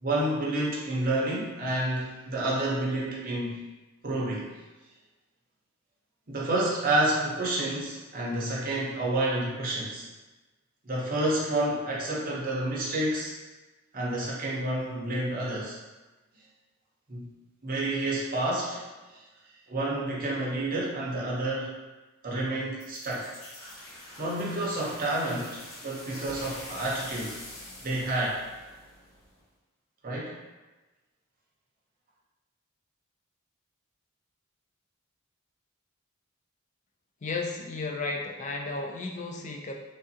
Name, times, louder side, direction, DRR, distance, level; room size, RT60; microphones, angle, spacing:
voice 1, 0.0-3.6 4.0-4.5 6.3-10.1 10.8-13.3 13.9-15.8 17.1-17.3 17.6-18.9 19.1-19.2 19.7-21.7 22.2-23.3 24.2-27.4 27.8-28.4 30.0-30.4, right 1 dB, 45° right, -5 dB, 0.8 m, -29 dB
sound 1, 22.8-29.4, left 1 dB, 80° left, 0.9 m, -45 dB
voice 2, 37.2-39.7, left 3 dB, 35° left, 1 dB, 0.4 m, -33 dB
3.5 x 2.6 x 2.7 m, 1.2 s
head